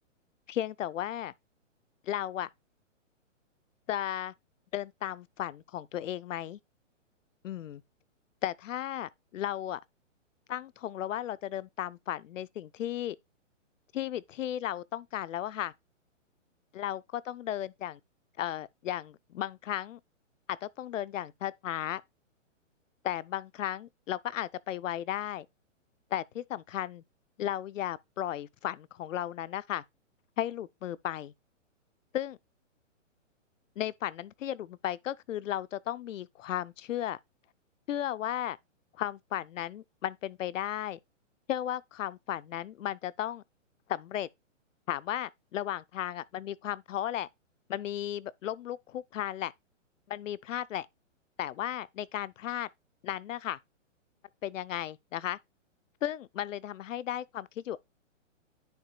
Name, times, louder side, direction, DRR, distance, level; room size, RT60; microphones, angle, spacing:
voice 1, 0.5-1.3 2.0-2.5 3.9-4.3 4.7-6.6 7.4-7.8 8.4-9.8 10.5-13.2 13.9-15.7 16.7-18.0 18.4-20.0 20.5-22.0 23.0-25.5 26.1-27.0 27.4-29.8 30.4-31.3 32.1-32.4 33.8-37.2 37.9-38.6 39.0-41.0 41.5-43.4 43.9-44.3 44.9-47.3 47.7-49.5 50.1-50.9 51.4-52.7 53.0-53.6 54.4-55.4 56.0-57.8, left 11 dB, 75° left, 0.6 m, -35 dB
10.0 x 5.8 x 2.2 m
hypercardioid pair, 170°, 38 cm